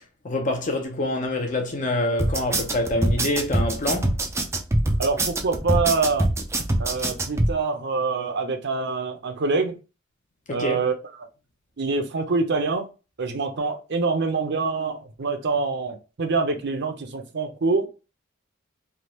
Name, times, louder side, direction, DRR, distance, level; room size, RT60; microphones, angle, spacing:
voice 1, 0.2-4.2 10.5-10.8, left 1 dB, 40° left, 0.7 m, -26 dB
sound 1, 2.2-7.5, right 1 dB, 15° right, 0.4 m, -23 dB
voice 2, 5.0-6.3 6.8-9.8 10.5-10.9 11.8-12.8 13.2-17.9, right 4 dB, 55° right, 0.7 m, -25 dB
3.4 x 2.4 x 2.9 m
head